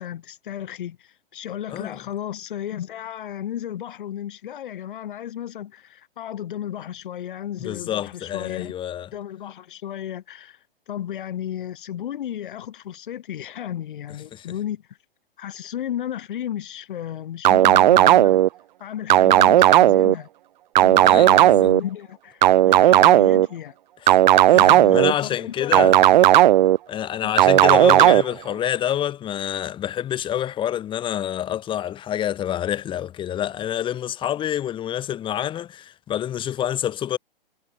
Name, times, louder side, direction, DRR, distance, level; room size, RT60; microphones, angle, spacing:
voice 1, 0.0-8.7 9.1-10.6 10.9-15.0 15.4-18.4 18.8-20.3 20.8-23.7 24.5-26.0 27.2-27.4, left 11 dB, 60° left, 6.8 m, -34 dB
voice 2, 7.6-9.1 14.3-14.5 21.0-21.7 24.0-24.2 24.5-26.0 26.9-37.2, left 11 dB, 15° left, 1.5 m, -27 dB
sound 1, 17.4-18.5 19.1-20.1 20.8-21.8 22.4-23.5 24.1-25.1 25.7-26.8 27.4-28.2, right 13 dB, 50° right, 0.7 m, -14 dB
hypercardioid pair, 130°, 29 cm